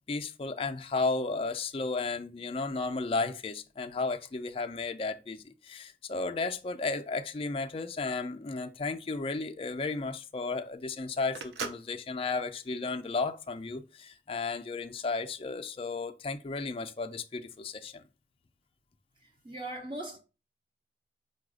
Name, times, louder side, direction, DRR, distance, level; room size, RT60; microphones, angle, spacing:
voice 1, 0.1-18.0, left 3 dB, 30° left, 0.4 m, -34 dB
Telephone, 8.4-13.7, right 4 dB, 80° right, 0.6 m, -44 dB
voice 2, 19.2-20.2, right 1 dB, 30° right, 0.6 m, -40 dB
4.8 x 2.3 x 4.8 m
head